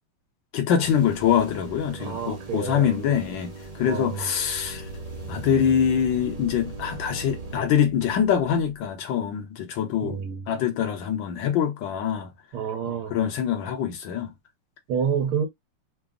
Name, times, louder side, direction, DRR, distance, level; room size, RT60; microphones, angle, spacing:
voice 1, 0.5-4.9 5.3-10.2 10.5-12.3 13.1-14.3, left 8 dB, 65° left, 1.4 m, -24 dB
sound 1, 0.8-7.6, right 3 dB, 35° right, 0.5 m, -41 dB
voice 2, 2.0-3.2 3.8-4.3 10.0-10.5 12.5-13.2 14.9-15.5, right 7 dB, 80° right, 1.6 m, -29 dB
sound 2, 4.4-8.8 9.3-9.4, right 2 dB, 85° left, 1.6 m, -40 dB
3.9 x 2.0 x 3.5 m
omnidirectional pair, 2.4 m